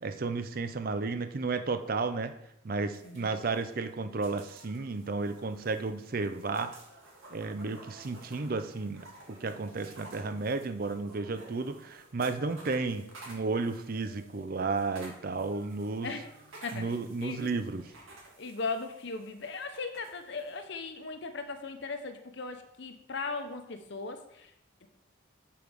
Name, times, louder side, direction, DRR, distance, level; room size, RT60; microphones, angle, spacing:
voice 1, 0.0-2.3 2.6-6.8 7.3-16.1 16.7-17.8, right 3 dB, 45° right, 9 dB, 0.5 m, -33 dB
sound 1, 2.9-20.6, right 2 dB, 80° right, 1.8 m, -54 dB
voice 2, 3.0-3.4 16.0-16.3 16.6-17.5 18.4-24.5 24.8-24.9, left 4 dB, 60° left, 7 dB, 0.8 m, -38 dB
7.1 x 4.7 x 5.1 m, 0.82 s
head